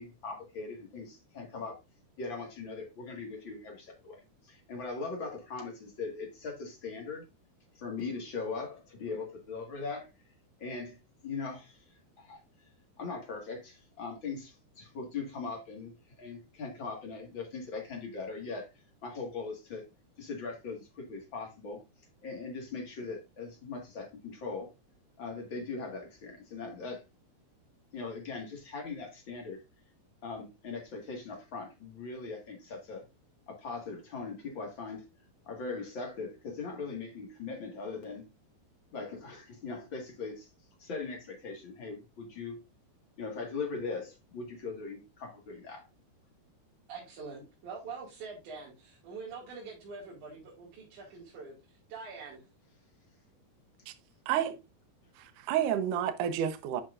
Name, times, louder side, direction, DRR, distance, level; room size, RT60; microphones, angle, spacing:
voice 1, 0.0-1.8 2.2-7.2 7.7-10.1 10.6-11.0 11.2-11.8 12.2-12.4 13.0-18.7 19.0-19.8 20.2-21.8 22.2-24.7 25.2-27.0 27.9-29.6 30.2-33.0 33.5-35.0 35.4-38.3 38.9-40.5 40.8-42.6 43.2-45.8, left 4 dB, 45° left, 1.6 m, -40 dB
voice 2, 46.9-51.5 51.9-52.4, right 4 dB, 55° right, 3.2 m, -44 dB
voice 3, 54.3-54.6 55.2-56.8, right 10 dB, 85° right, 1.8 m, -30 dB
8.9 x 5.8 x 2.5 m
omnidirectional pair, 4.7 m